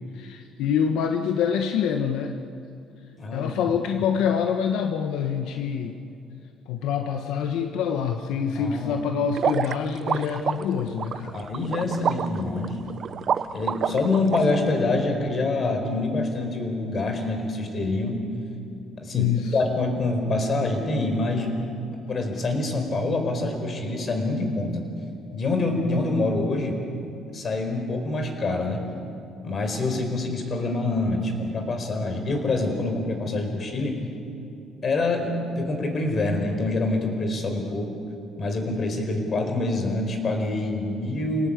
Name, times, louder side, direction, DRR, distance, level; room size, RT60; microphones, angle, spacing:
voice 1, 0.2-2.4 3.3-6.0 6.7-11.4 19.1-19.4, left 7 dB, 80° left, 5 dB, 1.3 m, -26 dB
voice 2, 3.2-3.8 8.5-9.0 11.3-12.8 13.5-18.2 19.0-21.5 22.1-24.9 25.3-26.8 27.3-28.8 29.4-34.0 34.8-37.9 38.4-41.5, left 2 dB, 40° left, 5 dB, 4.7 m, -26 dB
sound 1, 9.3-14.4, right 7 dB, 45° right, 0.8 m, -27 dB
28.5 x 18.5 x 8.5 m, 2.7 s
cardioid pair, 110°, 0 cm